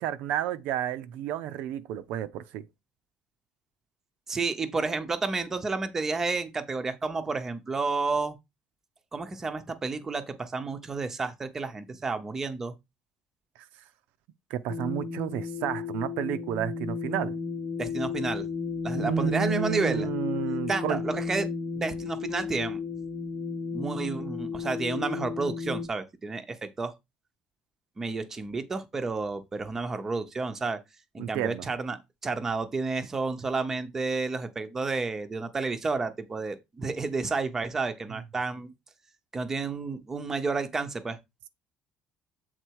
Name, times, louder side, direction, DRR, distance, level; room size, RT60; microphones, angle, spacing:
voice 1, 0.0-2.6 14.5-17.4 18.9-21.0 31.2-31.7 38.1-38.2, right 11 dB, 75° right, 0.7 m, -31 dB
voice 2, 4.3-8.4 9.1-12.7 17.8-18.5 18.8-20.1 20.7-21.5 21.8-22.8 23.7-26.9 28.0-30.8 31.1-32.0 32.2-38.7 39.3-41.2, right 3 dB, 15° right, 0.8 m, -31 dB
sound 1, 14.7-25.9, left 5 dB, 35° left, 0.8 m, -33 dB
7.9 x 4.0 x 4.7 m
cardioid pair, 180°, 3 cm